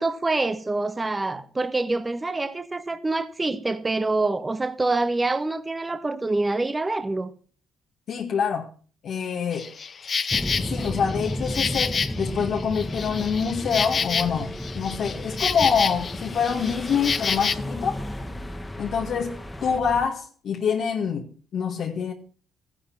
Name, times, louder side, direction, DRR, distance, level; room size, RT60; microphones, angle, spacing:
voice 1, 0.0-7.3, right 2 dB, 20° right, 1.3 m, -26 dB
voice 2, 8.1-8.7 9.0-9.7 10.6-18.0 18.8-22.1, left 6 dB, 65° left, 1.9 m, -26 dB
Insect, 9.5-17.5, left 6 dB, 45° left, 0.8 m, -29 dB
sound 1, 10.3-20.1, equal, ahead, 1.3 m, -34 dB
sound 2, 12.8-19.8, left 1 dB, 15° left, 1.9 m, -40 dB
14.0 x 11.0 x 5.9 m
cardioid pair, 90°, 0 cm